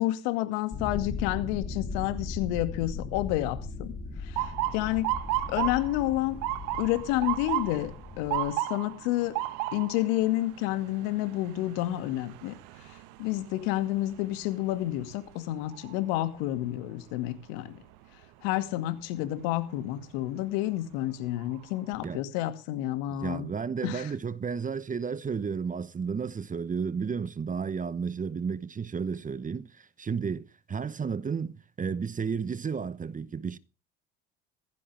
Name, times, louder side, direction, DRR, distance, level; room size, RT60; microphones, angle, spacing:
voice 1, 0.0-4.0 4.2-5.1 5.5-6.4 6.8-9.4 9.7-12.5 13.2-17.7 18.4-23.5 23.8-24.1, left 15 dB, 70° left, 2.3 m, -30 dB
sound 1, 0.7-8.5, left 4 dB, 25° left, 3.4 m, -38 dB
Motor vehicle (road) / Siren, 4.4-16.3 16.7-17.1 17.9-18.2 20.1-20.3 20.9-21.0 21.4-22.1, right 16 dB, 65° right, 1.5 m, -35 dB
voice 2, 23.1-33.6, right 6 dB, 25° right, 1.0 m, -32 dB
16.0 x 15.0 x 3.5 m
hypercardioid pair, 75°, 33 cm